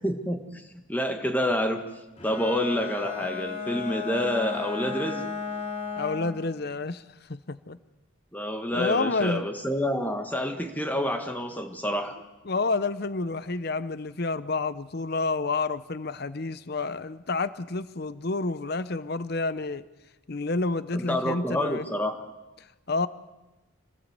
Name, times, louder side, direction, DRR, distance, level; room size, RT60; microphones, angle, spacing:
voice 1, 0.0-1.9 2.2-5.3 8.3-12.1 20.9-22.2, equal, 10° left, 1.6 m, -28 dB
Bowed string instrument, 2.2-6.4, left 6 dB, 30° left, 3.6 m, -34 dB
voice 2, 6.0-7.0 7.3-7.8 8.7-9.5 12.5-19.8 20.3-21.9 22.6-23.1, left 3 dB, 50° left, 0.7 m, -29 dB
26.0 x 19.0 x 8.1 m
head